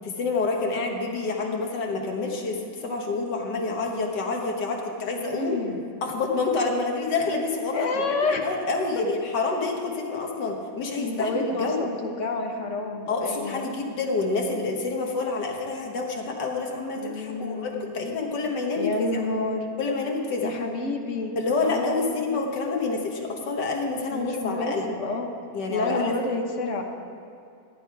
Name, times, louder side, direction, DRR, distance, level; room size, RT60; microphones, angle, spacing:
voice 1, 0.0-5.6 6.0-11.9 13.1-19.1 19.8-20.5 21.4-24.9 25.5-26.1, left 3 dB, 90° left, 1 dB, 2.0 m, -28 dB
voice 2, 5.2-5.8 7.7-8.4 11.0-13.7 17.0-18.0 18.7-19.7 20.4-22.3 24.1-25.3 25.7-26.8, left 3 dB, 50° left, 3 dB, 1.3 m, -29 dB
15.0 x 10.0 x 4.8 m, 2.5 s
omnidirectional pair, 1.8 m